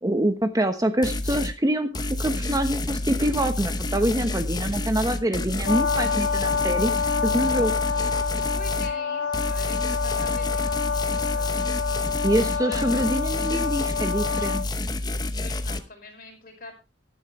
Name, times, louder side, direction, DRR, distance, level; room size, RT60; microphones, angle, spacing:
voice 1, 0.0-6.9 7.2-7.7 12.2-14.6, right 1 dB, 20° right, 8 dB, 1.0 m, -25 dB
sound 1, 1.0-1.6 1.9-8.9 9.3-15.8, left 2 dB, 20° left, 0.9 m, -29 dB
Brass instrument, 5.6-14.7, left 6 dB, 75° left, 0.8 m, -27 dB
voice 2, 8.5-11.8 12.6-12.9 15.4-16.7, left 3 dB, 50° left, 2 dB, 5.2 m, -43 dB
14.0 x 12.0 x 3.2 m, 0.28 s
head